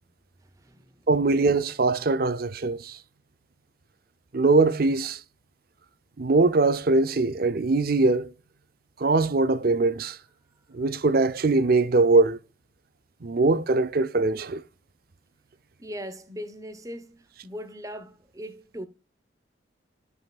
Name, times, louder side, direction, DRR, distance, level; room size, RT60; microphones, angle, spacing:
voice 1, 0.4-1.1 2.9-3.0 15.8-18.9, equal, 15° right, 0.9 m, -40 dB
voice 2, 1.1-3.0 4.3-5.2 6.2-8.3 9.0-10.2 10.7-12.4 13.2-14.6, right 3 dB, 50° right, 0.5 m, -22 dB
13.5 x 5.6 x 2.4 m
head